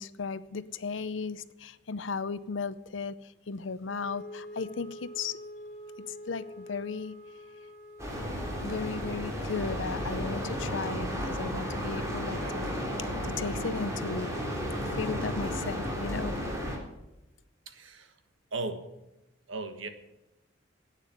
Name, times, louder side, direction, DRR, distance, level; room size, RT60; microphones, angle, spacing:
voice 1, 0.0-3.1 3.5-5.4 6.1-7.2 8.6-12.7 13.0-14.3 15.0-16.4, left 4 dB, 80° left, 15 dB, 0.7 m, -36 dB
Wind instrument woodwind instrument, 3.8-9.1, equal, 35° right, 3.5 m, -46 dB
sound 1, 8.0-16.8, equal, 15° right, 3.2 m, -33 dB
voice 2, 17.6-18.2 18.5-18.9 19.5-19.9, right 3 dB, 90° right, 8 dB, 1.5 m, -36 dB
10.5 x 9.1 x 9.2 m, 0.95 s
head